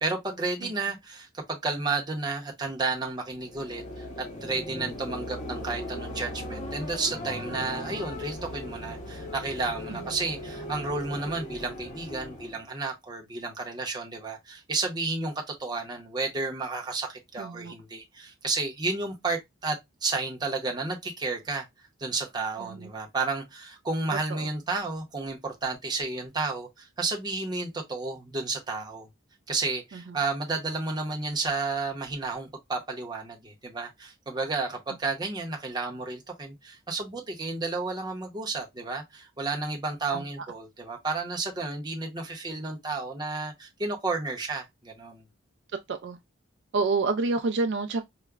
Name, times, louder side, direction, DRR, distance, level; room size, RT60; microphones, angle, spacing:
voice 1, 0.0-21.7 22.0-29.1 29.5-45.2, right 3 dB, 20° right, 0.7 m, -32 dB
sound 1, 3.3-12.7, left 1 dB, 35° left, 0.6 m, -38 dB
voice 2, 17.4-17.7 22.6-22.9 24.3-24.5 30.1-30.2 40.1-40.2 45.9-46.2 46.7-48.0, right 3 dB, 55° right, 0.3 m, -28 dB
4.7 x 2.1 x 2.2 m
head